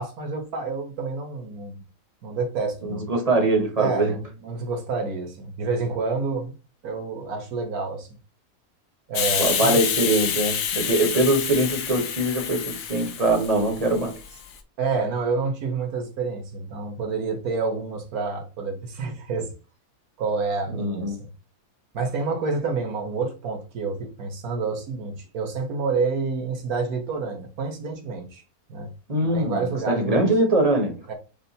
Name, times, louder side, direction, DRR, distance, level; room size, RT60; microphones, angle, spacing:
voice 1, 0.0-1.8 2.2-3.1 3.8-6.5 6.8-8.2 9.1-9.8 14.8-19.5 20.2-21.3 21.9-28.4 28.7-28.9 29.2-30.3 31.1-31.2, right 4 dB, 70° right, 1.6 m, -28 dB
voice 2, 2.8-4.2 9.3-14.2 20.7-21.2 29.1-31.1, right 2 dB, 30° right, 1.0 m, -23 dB
Hiss, 9.1-14.5, left 8 dB, 65° left, 1.0 m, -28 dB
6.7 x 2.5 x 2.8 m
omnidirectional pair, 1.7 m